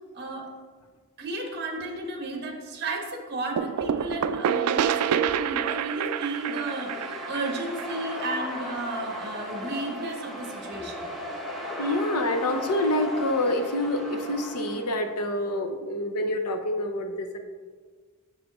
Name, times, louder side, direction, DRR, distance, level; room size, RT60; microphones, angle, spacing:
voice 1, 0.1-0.5 1.2-11.1, right 2 dB, 50° right, 2 dB, 1.1 m, -33 dB
sound 1, 3.6-9.1, right 8 dB, 80° right, 0.3 m, -28 dB
sound 2, 5.4-15.2, left 1 dB, ahead, 0.9 m, -37 dB
voice 2, 11.8-17.4, left 1 dB, 90° left, 6 dB, 0.7 m, -27 dB
7.3 x 6.5 x 3.0 m, 1.5 s
head